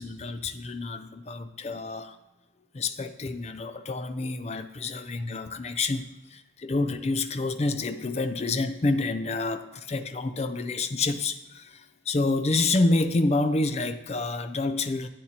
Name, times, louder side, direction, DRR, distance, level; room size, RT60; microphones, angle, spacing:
voice 1, 0.0-2.2 2.7-15.1, left 3 dB, 35° left, 0.5 m, -28 dB
11.0 x 8.2 x 2.9 m
head